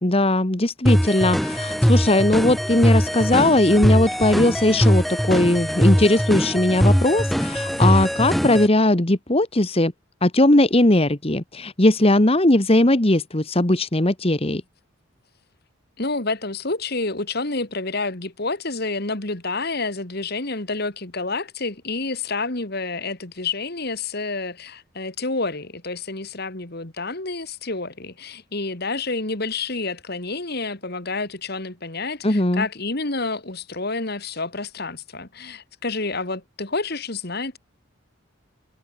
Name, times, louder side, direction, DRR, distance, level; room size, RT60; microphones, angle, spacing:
voice 1, 0.0-9.9 10.2-14.6 32.2-32.6, left 1 dB, 30° left, 1.4 m, -19 dB
sound 1, 0.9-8.7, equal, ahead, 1.8 m, -21 dB
voice 2, 16.0-37.6, left 3 dB, 50° left, 2.3 m, -29 dB
head